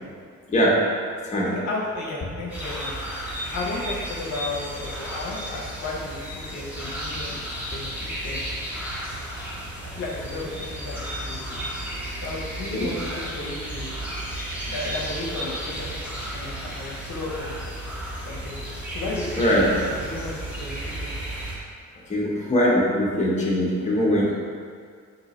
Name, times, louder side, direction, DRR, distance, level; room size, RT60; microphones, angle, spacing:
voice 1, 1.4-2.9 3.5-8.4 9.8-11.6 12.2-13.9 14.5-17.6 18.2-18.6 18.9-21.1, left 2 dB, 65° left, -4 dB, 0.8 m, -34 dB
sound 1, 2.5-21.6, equal, 5° right, 1.1 m, -33 dB
voice 2, 19.4-19.7 22.1-24.3, equal, 25° left, -5 dB, 0.9 m, -21 dB
3.8 x 2.8 x 3.1 m, 2.1 s
cardioid pair, 90°, 30 cm